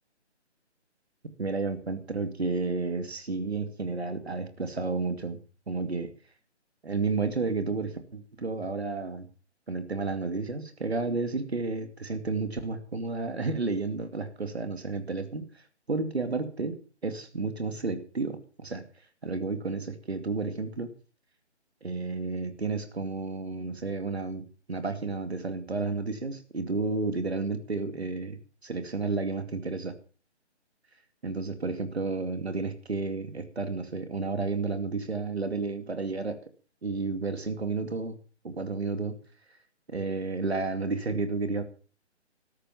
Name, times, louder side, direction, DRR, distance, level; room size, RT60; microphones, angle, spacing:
voice 1, 1.4-5.4 5.7-6.1 6.8-9.3 9.7-15.6 15.9-16.8 17.0-18.8 19.2-20.9 21.8-29.9 31.2-36.4 36.8-38.2 38.4-39.2 39.9-41.6, right 3 dB, 65° right, 9 dB, 2.5 m, -31 dB
13.5 x 11.5 x 7.3 m, 0.38 s
figure-of-eight pair, 150°, 35 cm